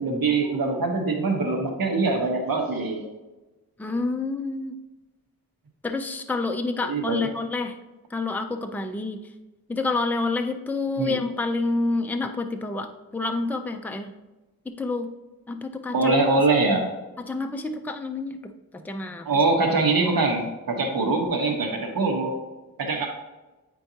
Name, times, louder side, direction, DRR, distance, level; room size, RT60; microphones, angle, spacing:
voice 1, 0.0-3.0 6.8-7.3 10.9-11.2 15.9-16.9 19.2-22.4 22.8-23.1, right 3 dB, 75° right, 2 dB, 1.2 m, -23 dB
voice 2, 3.8-4.8 5.8-7.8 8.1-9.2 9.7-12.9 13.1-14.1 14.8-15.1 15.5-16.1 17.3-18.4 18.7-19.3, left 3 dB, 5° left, 5 dB, 0.5 m, -28 dB
9.0 x 4.5 x 2.8 m, 1.1 s
wide cardioid pair, 90°, 36 cm